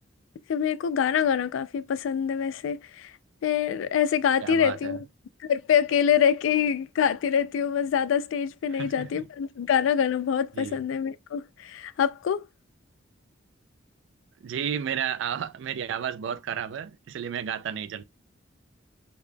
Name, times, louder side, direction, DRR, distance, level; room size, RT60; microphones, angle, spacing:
voice 1, 0.5-3.1 3.4-5.0 5.4-12.5, left 8 dB, 85° left, 0.3 m, -25 dB
voice 2, 4.4-5.0 8.7-9.2 10.5-10.8 14.4-18.0, right 8 dB, 70° right, 0.3 m, -32 dB
3.6 x 3.3 x 2.2 m
head